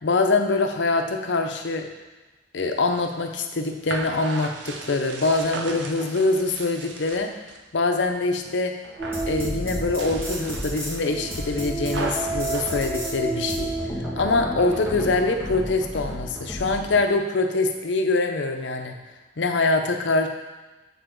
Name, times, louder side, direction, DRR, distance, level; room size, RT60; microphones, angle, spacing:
voice 1, 0.0-1.8 2.5-7.3 7.7-8.7 9.3-13.7 14.2-18.9 19.4-20.3, left 3 dB, 80° left, 5 dB, 0.7 m, -24 dB
sound 1, 2.8-7.6 8.0-8.6 8.8-9.4 9.8-13.7, right 3 dB, 75° right, 0.6 m, -37 dB
sound 2, 9.0-17.0, right 1 dB, 15° right, 2.0 m, -30 dB
6.9 x 4.9 x 3.8 m, 1.2 s
head